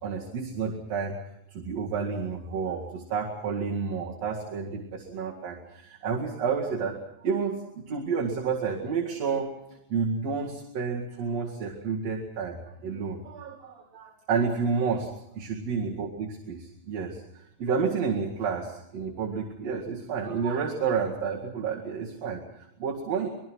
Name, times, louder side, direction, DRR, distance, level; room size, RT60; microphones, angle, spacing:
voice 1, 0.0-1.2 1.5-15.1 15.3-23.3, right 5 dB, 50° right, -2 dB, 3.1 m, -30 dB
25.5 x 21.0 x 6.2 m, 0.78 s
omnidirectional pair, 3.9 m